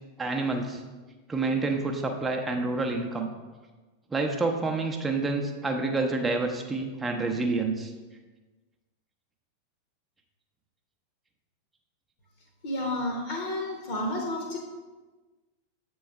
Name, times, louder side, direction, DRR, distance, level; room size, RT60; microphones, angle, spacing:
voice 1, 0.2-0.8 1.3-3.3 4.1-7.9, right 3 dB, 10° right, 2 dB, 0.7 m, -28 dB
voice 2, 12.6-14.6, left 1 dB, 55° left, 0 dB, 1.0 m, -31 dB
7.6 x 3.1 x 4.6 m, 1.3 s
figure-of-eight pair, 90°, 0 cm